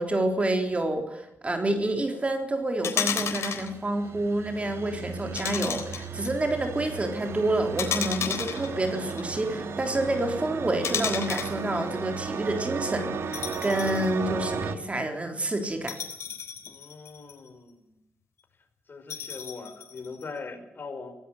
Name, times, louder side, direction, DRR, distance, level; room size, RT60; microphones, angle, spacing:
voice 1, 0.0-16.0, right 1 dB, 25° right, 5 dB, 3.5 m, -28 dB
sound 1, 2.8-3.7 5.3-6.3 7.8-9.2 10.8-11.6 13.3-14.1 14.5-14.6 15.9-17.5 19.1-20.2, left 7 dB, 75° left, 3.8 m, -32 dB
sound 2, 3.2-14.8, right 5 dB, 65° right, 2.3 m, -35 dB
voice 2, 16.6-18.0 18.9-21.1, left 4 dB, 45° left, 5 dB, 5.1 m, -41 dB
18.0 x 15.5 x 9.3 m, 0.79 s
cardioid pair, 80°, 5 cm